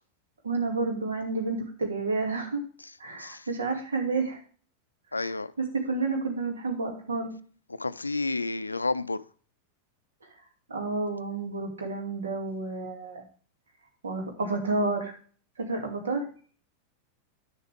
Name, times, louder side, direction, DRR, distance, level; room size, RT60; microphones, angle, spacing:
voice 1, 0.4-2.6 3.0-4.4 5.8-7.3 10.7-13.3 14.0-15.1 15.6-16.2, right 3 dB, 70° right, 2.5 m, -30 dB
voice 2, 5.1-5.5 7.7-9.2, left 3 dB, 80° left, 0.4 m, -31 dB
10.5 x 6.9 x 3.5 m
figure-of-eight pair, 90°, 0 cm